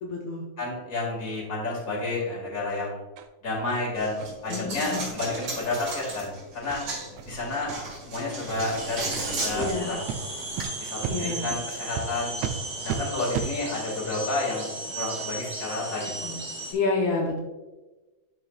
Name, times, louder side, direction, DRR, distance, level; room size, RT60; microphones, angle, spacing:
voice 1, 0.0-0.5 4.5-5.1 9.5-9.9 11.1-11.4 16.2-16.4 16.7-17.4, left 3 dB, 75° left, -1 dB, 2.0 m, -28 dB
voice 2, 0.6-3.0 3.4-6.8 7.3-7.7 8.1-10.0 10.8-12.3 12.8-14.7 15.0-16.3, left 2 dB, 30° left, -4 dB, 2.3 m, -30 dB
sound 1, 3.2-3.3 3.7-3.8 4.2-4.3 4.7-4.8 5.2-5.3 5.7-5.8 6.2-6.3 6.7-6.8 7.2-7.3 7.7-8.0 8.6-8.7 9.1-9.2 9.6-9.7 10.1-10.2 10.6-10.7 11.0-11.2 11.5-11.6 12.0-12.1 12.4-12.5 12.9-13.0 13.3-13.5, right 9 dB, 80° right, 1.6 m, -33 dB
Coin (dropping), 4.0-10.7, right 2 dB, 45° right, 2.8 m, -35 dB
sound 2, 8.8-16.7, right 2 dB, 30° right, 1.6 m, -36 dB
10.5 x 4.9 x 2.4 m, 1.1 s
omnidirectional pair, 3.3 m